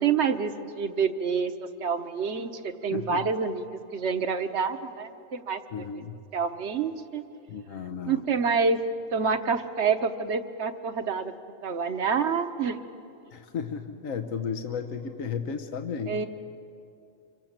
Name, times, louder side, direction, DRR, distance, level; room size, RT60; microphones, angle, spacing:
voice 1, 0.0-1.5 1.8-3.6 3.9-5.8 6.3-7.2 8.1-8.8 9.1-11.3 11.6-12.8 16.1-16.3, right 5 dB, 60° right, 9 dB, 1.3 m, -27 dB
voice 2, 2.9-3.2 5.7-6.2 7.5-8.2 13.3-16.2, left 6 dB, 80° left, 6 dB, 1.4 m, -34 dB
26.5 x 24.5 x 7.5 m, 2.7 s
omnidirectional pair, 1.4 m